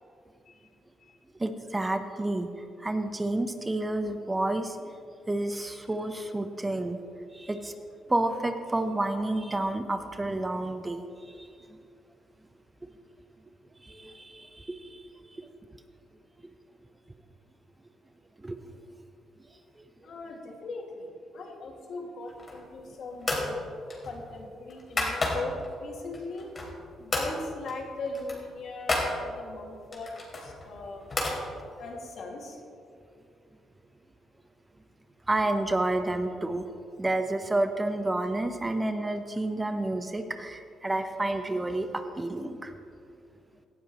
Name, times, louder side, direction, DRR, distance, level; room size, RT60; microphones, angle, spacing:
voice 1, 1.4-2.5 2.8-4.8 5.3-7.0 7.3-7.7 8.1-11.0 11.4-11.5 13.8-15.0 15.4-15.5 18.4-18.6 35.3-36.7 37.0-42.7, right 2 dB, 15° right, 7 dB, 0.8 m, -30 dB
voice 2, 20.0-23.6 24.0-26.5 27.0-31.0 31.8-32.6, left 3 dB, 65° left, 0 dB, 2.2 m, -39 dB
sound 1, 22.3-22.8 23.2-23.5 23.9-25.7 26.1-26.8 27.1-27.3 27.7-27.8 28.1-29.1 29.9-31.4, left 2 dB, 35° left, 3.1 m, -31 dB
18.0 x 12.0 x 3.1 m, 2.5 s
cardioid pair, 90°, 0 cm